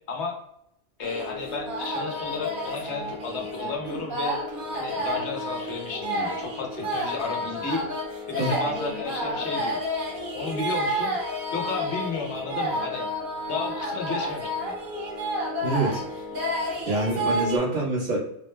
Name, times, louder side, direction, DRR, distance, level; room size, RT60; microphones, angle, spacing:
voice 1, 1.0-4.4 4.7-7.9 8.3-9.8 10.3-11.2 11.5-13.1 13.5-14.8, left 4 dB, 75° left, 1 dB, 1.1 m, -33 dB
sound 1, 1.0-17.6, equal, 50° right, 1.1 m, -30 dB
voice 2, 15.6-16.0 16.9-18.2, right 2 dB, 90° right, -4 dB, 1.6 m, -25 dB
3.7 x 2.1 x 3.1 m, 0.76 s
omnidirectional pair, 1.2 m